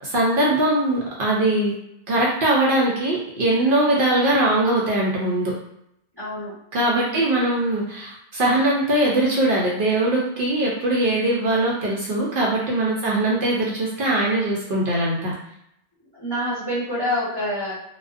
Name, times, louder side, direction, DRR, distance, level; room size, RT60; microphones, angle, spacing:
voice 1, 0.0-1.7 2.1-5.5 6.7-15.3, right 1 dB, 65° right, -4 dB, 0.7 m, -21 dB
voice 2, 6.2-6.5 6.9-7.2 12.8-13.5 16.1-17.7, equal, 25° left, -11 dB, 1.1 m, -28 dB
2.4 x 2.1 x 2.4 m, 0.78 s
omnidirectional pair, 1.0 m